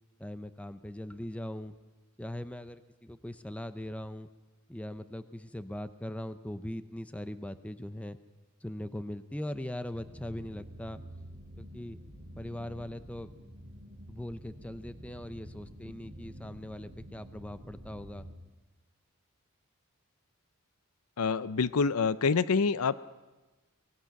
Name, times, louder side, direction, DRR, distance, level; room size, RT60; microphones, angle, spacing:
voice 1, 0.2-1.8 2.2-4.3 4.7-8.2 8.6-11.0 11.6-12.0 12.3-13.3 14.1-18.2, left 1 dB, 5° left, 11 dB, 0.6 m, -40 dB
sound 1, 9.9-18.3, equal, 30° right, 4.2 m, -48 dB
voice 2, 21.2-23.0, left 5 dB, 80° left, 16 dB, 0.6 m, -26 dB
24.5 x 19.5 x 5.9 m, 1.2 s
head